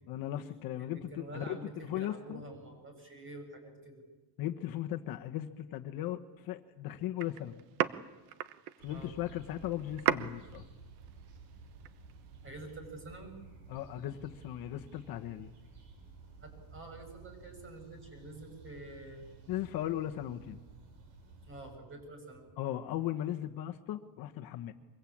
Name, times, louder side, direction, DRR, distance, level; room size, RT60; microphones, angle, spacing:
voice 1, 0.1-2.4 4.4-7.6 8.8-10.6 13.7-15.5 19.5-20.6 22.6-24.7, left 12 dB, 50° left, 6 dB, 1.3 m, -37 dB
voice 2, 0.8-4.0 8.9-9.1 12.4-13.3 16.4-19.3 21.4-22.6, right 2 dB, 25° right, 5 dB, 7.2 m, -47 dB
sound 1, 7.2-12.8, right 12 dB, 90° right, 1.2 m, -38 dB
sound 2, 8.8-21.8, right 4 dB, 60° right, 7.1 m, -54 dB
24.5 x 23.0 x 8.8 m, 1.2 s
cardioid pair, 170°, 46 cm